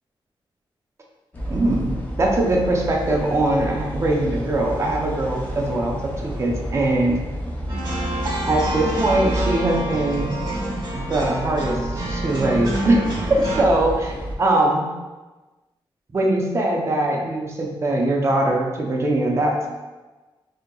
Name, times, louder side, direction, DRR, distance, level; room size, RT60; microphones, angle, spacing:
sound 1, 1.3-14.4, equal, 20° left, 0.5 m, -30 dB
voice 1, 1.5-7.2 8.2-10.3 10.9-14.9 16.1-19.8, right 1 dB, 30° right, 0 dB, 0.5 m, -22 dB
sound 2, 7.7-13.6, right 1 dB, 50° right, 0.9 m, -28 dB
4.3 x 2.7 x 2.2 m, 1.2 s
wide cardioid pair, 135°, 9 cm